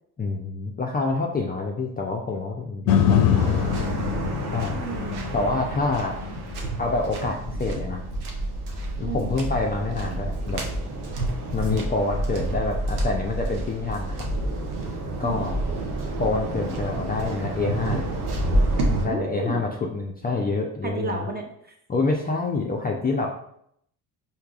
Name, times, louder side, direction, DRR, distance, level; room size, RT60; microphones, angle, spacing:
voice 1, 0.2-3.8 4.5-4.7 5.3-6.2 6.8-8.0 9.0-10.6 11.5-14.2 15.2-15.6 16.2-18.0 19.0-21.3 21.9-23.3, left 3 dB, 20° left, 0 dB, 0.5 m, -27 dB
sound 1, 2.9-11.0 11.5-11.6, left 8 dB, 70° left, 0.6 m, -27 dB
Waves surf, 3.3-19.1, right 1 dB, 80° right, 0.8 m, -29 dB
voice 2, 4.7-5.4 9.0-9.4 15.2-15.5 19.0-19.7 20.8-21.7, right 3 dB, 20° right, 2 dB, 0.8 m, -32 dB
4.5 x 2.8 x 2.4 m, 0.71 s
hypercardioid pair, 55°, 46 cm